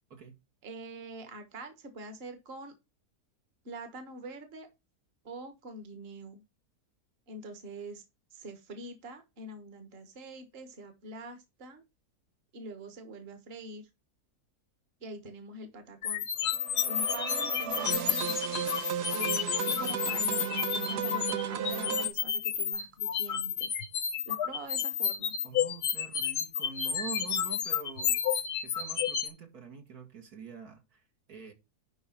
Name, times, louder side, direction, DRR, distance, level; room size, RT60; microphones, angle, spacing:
voice 1, 0.6-2.7 3.6-4.7 5.2-6.4 7.3-8.0 8.3-11.8 12.5-13.9 15.0-16.2 16.9-18.4 19.1-20.4 20.7-23.7 24.2-25.3, right 1 dB, 40° right, 1.6 m, -44 dB
sound 1, 16.0-29.3, left 9 dB, 80° left, 1.4 m, -31 dB
sound 2, 16.5-22.1, right 9 dB, 85° right, 1.4 m, -34 dB
voice 2, 25.4-31.0 31.3-31.5, right 5 dB, 70° right, 2.3 m, -45 dB
11.0 x 3.7 x 5.8 m
omnidirectional pair, 1.7 m